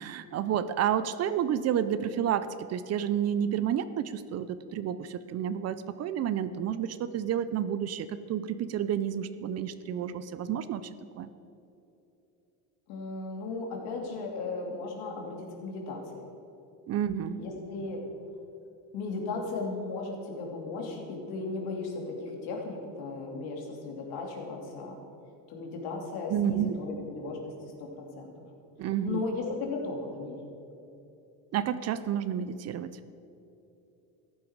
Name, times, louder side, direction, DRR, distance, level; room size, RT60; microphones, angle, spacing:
voice 1, 0.0-10.9 11.1-11.3 16.9-17.4 26.3-26.8 28.8-29.2 31.5-33.0, right 9 dB, 40° right, 13 dB, 0.6 m, -30 dB
voice 2, 12.9-16.2 17.4-18.1 18.9-25.0 25.5-28.3 29.0-30.4, left 3 dB, 70° left, 1 dB, 2.8 m, -36 dB
14.0 x 11.0 x 4.7 m, 2.9 s
cardioid pair, 120°, 39 cm